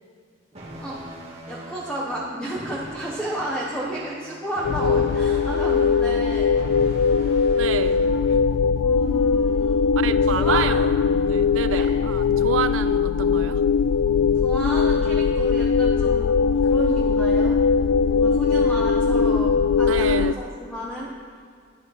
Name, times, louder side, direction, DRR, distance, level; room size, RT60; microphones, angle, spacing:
sound 1, 0.5-8.5, right 1 dB, 30° right, 1.8 m, -41 dB
voice 1, 1.5-6.6 8.8-9.9 10.3-10.9 11.7-11.9 14.4-17.6 18.1-21.1, right 1 dB, 5° left, -4 dB, 1.1 m, -32 dB
sound 2, 4.6-20.3, left 5 dB, 70° left, 0.3 m, -20 dB
voice 2, 7.6-8.0 8.3-8.4 10.0-10.8 11.2-13.6 19.9-20.4, right 6 dB, 80° right, 12 dB, 0.5 m, -28 dB
11.0 x 9.5 x 5.8 m, 2.2 s
head